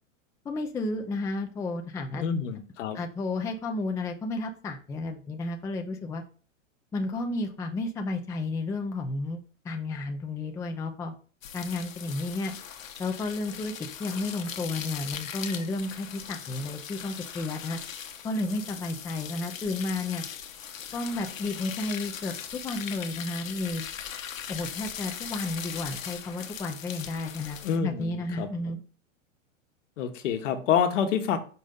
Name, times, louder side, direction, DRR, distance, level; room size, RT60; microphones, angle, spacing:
voice 1, 0.4-2.2 2.9-6.2 6.9-9.4 9.6-11.1 11.5-12.6 13.0-13.7 14.0-17.8 18.2-20.2 20.9-23.9 24.5-28.8, left 2 dB, 10° left, 5 dB, 0.4 m, -32 dB
voice 2, 2.2-3.0 27.6-28.8 30.0-31.4, left 7 dB, 70° left, 7 dB, 1.2 m, -27 dB
sound 1, 11.4-27.8, left 8 dB, 85° left, 1.0 m, -40 dB
5.3 x 5.3 x 3.7 m, 0.40 s
hypercardioid pair, 125°, 39 cm